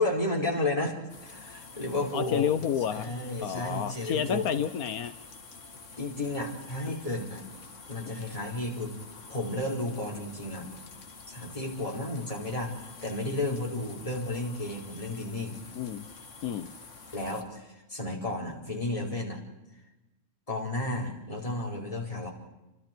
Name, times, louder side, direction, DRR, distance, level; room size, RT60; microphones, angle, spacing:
voice 1, 0.0-2.5 2.9-4.4 6.0-7.4 7.9-9.0 9.3-10.7 11.3-15.6 17.1-19.4 20.5-22.3, left 2 dB, 25° left, -2 dB, 4.9 m, -32 dB
sound 1, 1.1-17.4, left 4 dB, 60° left, 2.1 m, -48 dB
voice 2, 2.1-3.1 3.4-5.1 15.7-16.1 16.4-16.7, left 8 dB, 90° left, 10 dB, 1.5 m, -30 dB
30.0 x 24.5 x 4.6 m, 1.0 s
omnidirectional pair, 1.5 m